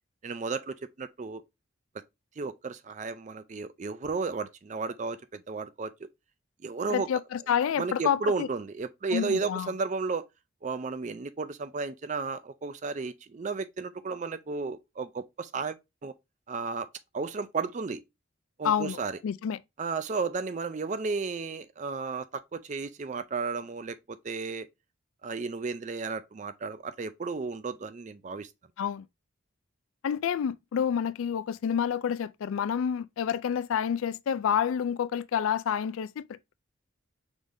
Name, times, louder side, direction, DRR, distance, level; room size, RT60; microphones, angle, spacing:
voice 1, 0.2-1.4 2.4-6.1 6.6-7.1 7.8-10.3 10.6-15.8 16.0-16.1 16.5-16.9 17.1-18.0 18.6-19.2 19.8-24.7 25.2-28.5, right 4 dB, 35° right, 0.4 m, -33 dB
voice 2, 6.9-8.5 9.1-9.7 18.6-19.6 28.8-29.0 30.0-36.2, left 8 dB, 80° left, 0.3 m, -28 dB
5.0 x 3.7 x 2.6 m
head